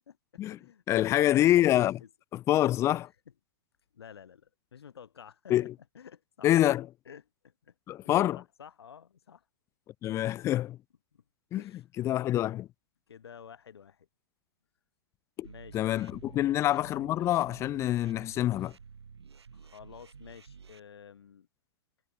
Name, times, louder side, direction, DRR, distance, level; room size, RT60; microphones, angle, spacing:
voice 1, 0.3-1.7 2.0-2.1 3.9-5.7 5.9-6.5 7.1-7.7 8.4-9.4 10.0-10.2 11.1-11.2 11.5-11.8 12.1-12.3 13.1-14.1 15.4-15.9 16.4-16.5 19.5-21.5, left 8 dB, 75° left, 2.1 m, -51 dB
voice 2, 0.9-2.0 2.3-3.1 5.5-5.7 6.4-6.9 7.9-8.4 10.0-10.8 11.5-11.6 12.0-12.7 15.4-15.5 15.7-18.7, left 13 dB, 20° left, 0.4 m, -26 dB
sound 1, 15.4-20.8, right 6 dB, 85° right, 1.4 m, -51 dB
hypercardioid pair, 120°, 13 cm